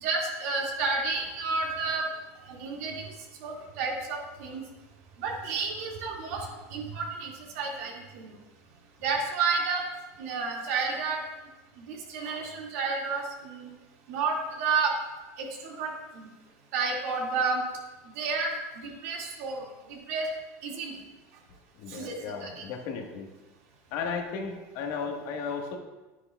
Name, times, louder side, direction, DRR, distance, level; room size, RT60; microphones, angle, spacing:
voice 1, 0.0-2.0 2.5-3.0 3.4-4.6 5.2-7.3 7.5-8.3 9.0-9.8 10.2-11.2 11.9-13.7 14.1-14.9 15.4-16.3 16.7-17.6 18.2-18.5 18.8-20.3 20.6-21.0 21.9-22.2 22.4-22.6, right 4 dB, 75° right, -1 dB, 2.1 m, -31 dB
voice 2, 21.7-23.3 23.9-25.8, left 5 dB, 65° left, 3 dB, 1.4 m, -35 dB
9.7 x 9.6 x 2.3 m, 1.2 s
supercardioid pair, 110°, 8 cm